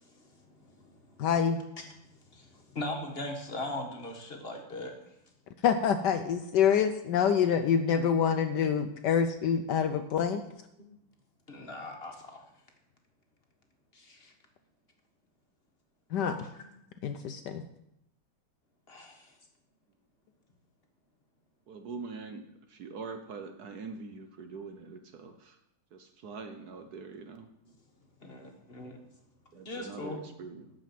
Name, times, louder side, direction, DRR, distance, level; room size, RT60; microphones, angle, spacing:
voice 1, 0.0-1.3 1.8-5.4 10.8-10.9 11.5-12.7 13.9-14.3 16.5-16.7 18.9-19.5 26.7-27.1 27.6-30.3 30.7-30.8, left 1 dB, 30° left, 1.5 m, -42 dB
voice 2, 1.2-1.6 5.6-10.4 16.1-16.5 17.0-17.6, left 7 dB, 70° left, 1.1 m, -26 dB
voice 3, 21.7-22.4 22.7-25.6 25.9-27.5 29.5-30.6, right 4 dB, 60° right, 1.1 m, -43 dB
11.5 x 5.2 x 7.5 m
omnidirectional pair, 2.2 m